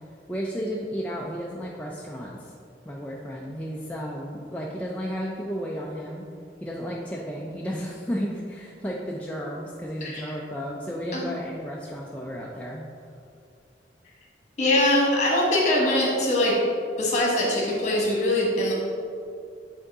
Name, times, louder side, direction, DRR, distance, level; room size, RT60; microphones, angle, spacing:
voice 1, 0.3-2.5 2.8-6.2 6.6-12.8, equal, 10° left, -4 dB, 0.4 m, -33 dB
voice 2, 14.6-16.5 17.0-18.7, left 1 dB, 40° left, -3 dB, 1.4 m, -22 dB
8.2 x 3.7 x 3.6 m, 2.4 s
head